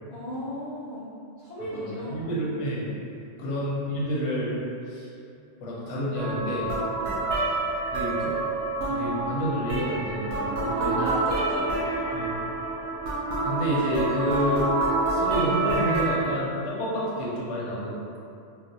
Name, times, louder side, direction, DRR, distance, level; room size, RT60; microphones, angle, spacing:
voice 1, 0.1-1.1 1.4-2.3 3.4-3.5 7.0-7.2 11.0-11.8, equal, 55° left, -10 dB, 0.5 m, -35 dB
voice 2, 1.8-2.9 3.4-4.6 4.9-5.1 5.6-6.7 7.9-8.4 8.9-11.0 12.1-12.3 13.4-14.7 15.1-18.2, equal, 85° left, -6 dB, 1.0 m, -29 dB
sound 1, 6.1-16.2, right 2 dB, 65° right, 0.7 m, -27 dB
2.4 x 2.1 x 3.9 m, 2.6 s
omnidirectional pair, 1.2 m